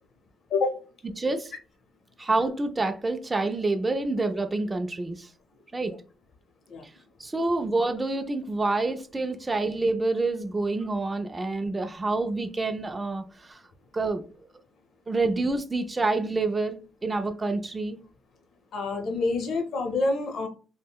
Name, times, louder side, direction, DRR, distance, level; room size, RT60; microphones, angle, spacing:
voice 1, 1.2-1.5 2.2-5.3 5.7-5.9 7.2-13.6 13.9-14.2 15.1-18.0, right 3 dB, 20° right, 0.3 m, -27 dB
voice 2, 18.7-20.5, left 3 dB, 65° left, 0.6 m, -27 dB
3.5 x 2.1 x 2.3 m
cardioid pair, 125°, 0 cm